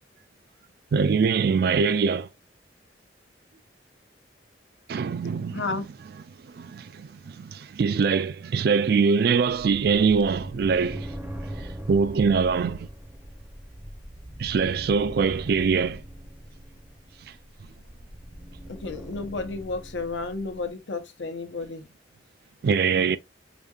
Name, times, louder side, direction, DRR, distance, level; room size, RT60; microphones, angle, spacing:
voice 1, 0.9-2.3 4.9-5.8 6.5-11.1 11.6-12.9 14.4-16.0 22.6-23.2, right 5 dB, 60° right, 0.3 m, -23 dB
voice 2, 5.5-5.8 18.7-21.9, left 3 dB, 90° left, 0.8 m, -32 dB
sound 1, 9.5-20.7, equal, 10° right, 0.6 m, -40 dB
5.0 x 2.6 x 2.3 m
head